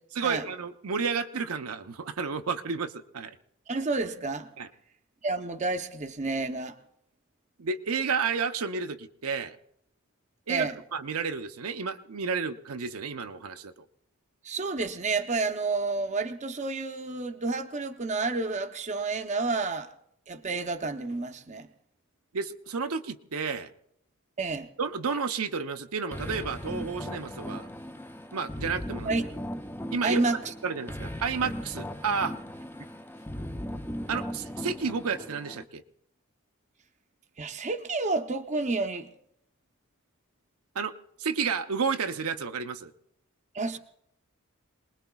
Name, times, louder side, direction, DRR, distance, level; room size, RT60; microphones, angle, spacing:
voice 1, 0.2-3.4 4.6-4.7 7.6-9.6 10.5-13.8 22.3-23.7 24.8-27.7 28.3-29.1 29.9-30.2 30.6-32.3 34.1-35.8 40.7-40.9 41.2-42.9, right 5 dB, 90° right, 0.7 m, -31 dB
voice 2, 3.7-4.5 5.2-6.8 10.5-10.8 14.4-19.9 20.3-21.7 24.4-24.7 29.0-29.3 30.0-30.5 37.4-39.1 43.5-43.8, right 3 dB, 35° right, 0.6 m, -30 dB
sound 1, 26.1-35.6, equal, 10° left, 0.5 m, -38 dB
27.0 x 20.0 x 2.3 m
head